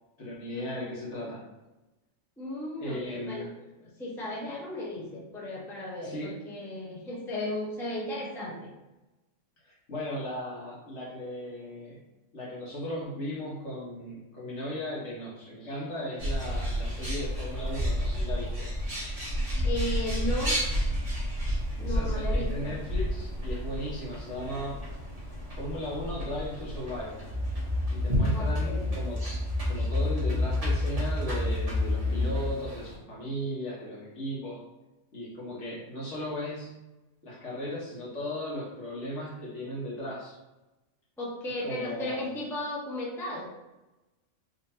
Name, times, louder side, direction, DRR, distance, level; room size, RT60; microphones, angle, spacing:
voice 1, 0.2-1.4 2.8-3.5 6.0-6.3 9.6-12.0 12.3-18.7 21.8-24.8 25.6-27.2 27.9-29.2 29.6-34.6 35.1-36.7 37.2-40.4 41.6-42.2, equal, 65° left, -6 dB, 1.5 m, -36 dB
voice 2, 2.4-3.5 3.8-8.7 19.6-20.6 21.8-22.8 28.3-28.9 41.2-43.5, left 1 dB, 5° left, -5 dB, 0.6 m, -35 dB
Bird, 16.2-33.0, equal, 30° right, 1.1 m, -32 dB
sound 1, 27.3-32.5, left 2 dB, 45° right, 0.6 m, -29 dB
3.9 x 2.9 x 2.7 m, 1.0 s
omnidirectional pair, 1.3 m